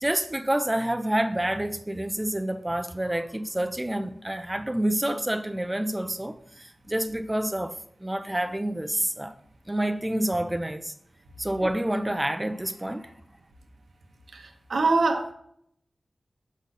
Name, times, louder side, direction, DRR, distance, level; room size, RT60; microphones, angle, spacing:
voice 1, 0.0-7.7 8.0-9.3 9.7-10.9 11.4-13.1, right 1 dB, 20° right, 0.6 m, -28 dB
voice 2, 14.3-15.3, right 3 dB, 90° right, 0.9 m, -24 dB
6.2 x 5.3 x 4.1 m
cardioid pair, 50°, 0 cm